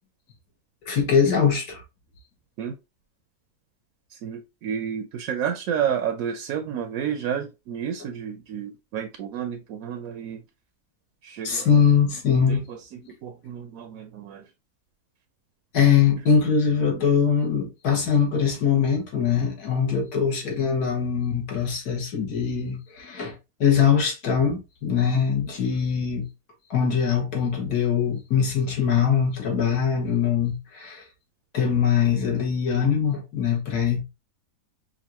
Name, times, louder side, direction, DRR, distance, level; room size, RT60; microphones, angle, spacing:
voice 1, 0.9-1.8 11.4-12.6 13.0-13.1 15.7-23.4 23.6-26.3 26.7-31.0 31.5-34.0, left 7 dB, 75° left, 1.7 m, -22 dB
voice 2, 4.1-10.4 11.2-11.8 12.5-14.5, right 8 dB, 70° right, 0.9 m, -31 dB
5.3 x 2.5 x 2.9 m
omnidirectional pair, 1.7 m